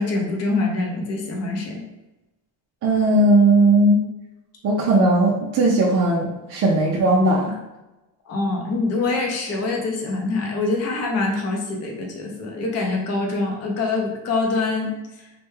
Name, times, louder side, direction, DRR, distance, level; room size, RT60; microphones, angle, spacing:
voice 1, 0.0-1.8 8.3-14.9, left 3 dB, 35° left, 0 dB, 0.5 m, -24 dB
voice 2, 2.8-4.0 4.6-7.6, right 2 dB, 35° right, -3 dB, 0.4 m, -17 dB
3.2 x 2.2 x 3.1 m, 1.0 s
cardioid pair, 160°, 47 cm